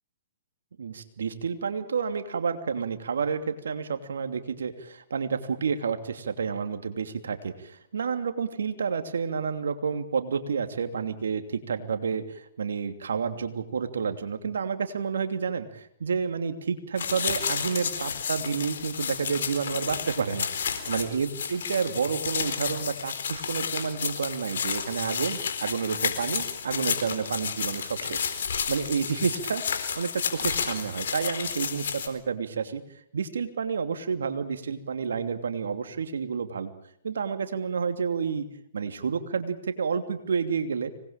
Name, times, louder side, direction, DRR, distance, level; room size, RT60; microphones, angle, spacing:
voice 1, 0.8-20.5 20.9-28.3 28.7-32.8 33.1-36.7 37.0-38.5 38.7-40.9, right 6 dB, 80° right, 9 dB, 2.9 m, -30 dB
sound 1, 17.0-32.1, left 7 dB, 70° left, 4.1 m, -31 dB
25.5 x 20.5 x 8.9 m, 0.74 s
hypercardioid pair, 125°, 0 cm